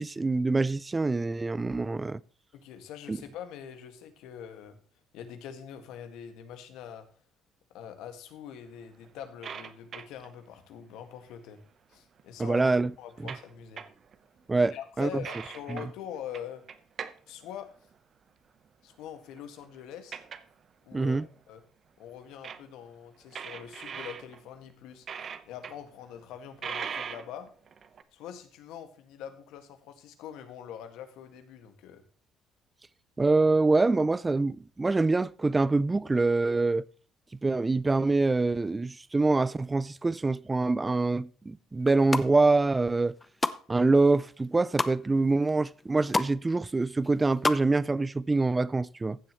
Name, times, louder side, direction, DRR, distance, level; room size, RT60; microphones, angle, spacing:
voice 1, 0.0-2.2 3.1-3.2 12.4-12.9 14.5-15.2 15.7-15.8 20.9-21.3 33.2-36.9 37.4-43.1 43.7-49.2, right 3 dB, 20° right, 0.4 m, -25 dB
voice 2, 2.5-4.8 5.1-7.1 7.7-11.6 11.9-12.6 13.0-13.8 14.6-16.6 17.3-17.7 18.8-20.2 20.8-21.6 22.0-25.1 25.5-27.5 28.1-32.0, left 9 dB, 80° left, 1.9 m, -44 dB
sound 1, 8.8-10.4 11.9-12.0 12.2-12.3 13.1-13.5 13.8-14.1 14.6-14.7 15.2-15.9 16.3-17.2 17.4-17.9 19.3-19.8 20.1-20.5 20.9-21.0 21.3-21.4 22.4-22.6 23.2-24.7 25.1-25.8 26.2-26.3 26.6-28.0, right 7 dB, 45° right, 0.9 m, -40 dB
sound 2, 41.8-42.3 42.8-43.6 44.0-45.0 45.5-45.6 45.8-46.4 46.6-47.6 47.9-48.0, left 3 dB, 15° left, 0.7 m, -30 dB
15.0 x 7.5 x 3.1 m
cardioid pair, 105°, 0 cm